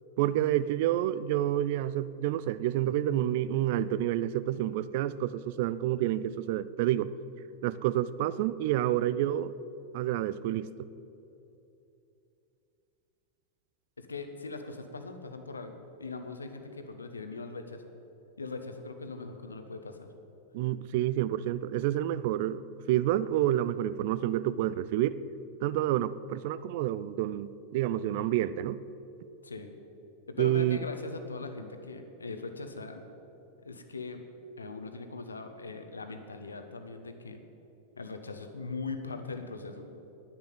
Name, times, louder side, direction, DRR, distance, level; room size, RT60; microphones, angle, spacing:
voice 1, 0.2-7.1 7.6-9.5 9.9-10.9 20.5-25.2 25.6-28.8 30.4-30.8, right 13 dB, 50° right, 17 dB, 0.4 m, -29 dB
voice 2, 14.0-17.9 18.4-20.1 29.4-29.7 30.3-33.0 33.6-34.2 34.6-37.4 38.0-39.9, left 3 dB, 75° left, 7 dB, 1.2 m, -40 dB
10.0 x 10.0 x 9.3 m, 2.8 s
figure-of-eight pair, 90°, 0 cm